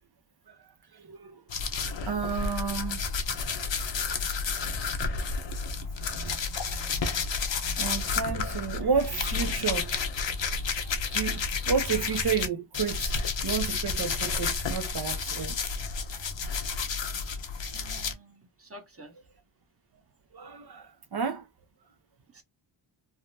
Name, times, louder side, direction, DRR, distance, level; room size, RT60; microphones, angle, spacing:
voice 1, 0.5-1.4 1.9-3.1 4.0-4.4 7.8-9.9 11.1-13.1 13.4-15.6 20.3-21.5, right 6 dB, 50° right, 0.7 m, -31 dB
sound 1, 1.5-12.5 12.7-18.1, left 5 dB, 65° left, 0.9 m, -31 dB
voice 2, 17.7-19.2 22.3-22.4, right 1 dB, 30° right, 0.9 m, -49 dB
3.6 x 2.1 x 2.6 m
wide cardioid pair, 85°, 49 cm